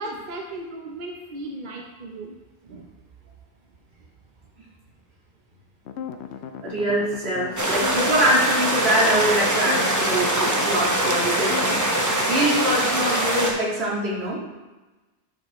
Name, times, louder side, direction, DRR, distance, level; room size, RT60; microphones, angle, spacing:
voice 1, 0.0-2.4 2.6-2.9 3.3-3.4, right 2 dB, 50° right, 1 dB, 0.8 m, -36 dB
sound 1, 5.9-12.6, left 8 dB, 75° left, 0.8 m, -35 dB
voice 2, 6.6-14.4, right 1 dB, 65° right, -5 dB, 2.2 m, -24 dB
sound 2, 7.6-13.5, right 1 dB, 20° right, 0.8 m, -23 dB
11.0 x 5.5 x 3.1 m, 1.2 s
omnidirectional pair, 1.1 m